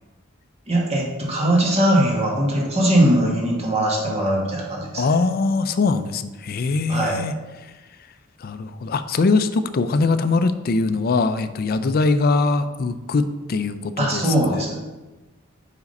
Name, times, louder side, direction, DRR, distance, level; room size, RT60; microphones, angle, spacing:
voice 1, 0.7-5.0 6.9-7.3 14.0-14.7, right 1 dB, 30° right, -2 dB, 1.6 m, -20 dB
voice 2, 5.0-7.3 7.6-7.7 8.4-14.6, left 3 dB, 45° left, 11 dB, 0.4 m, -22 dB
5.2 x 4.9 x 5.3 m, 1.2 s
head